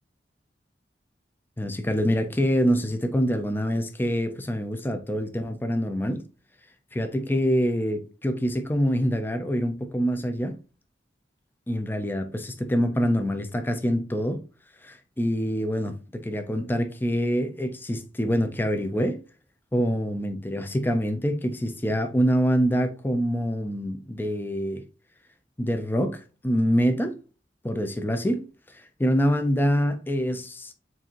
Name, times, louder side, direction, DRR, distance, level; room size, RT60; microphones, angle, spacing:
voice 1, 1.6-6.2 6.9-10.6 11.7-14.4 14.8-19.2 19.7-24.8 25.6-27.2 27.6-30.7, equal, 10° left, 0.4 m, -25 dB
7.2 x 2.5 x 2.9 m
head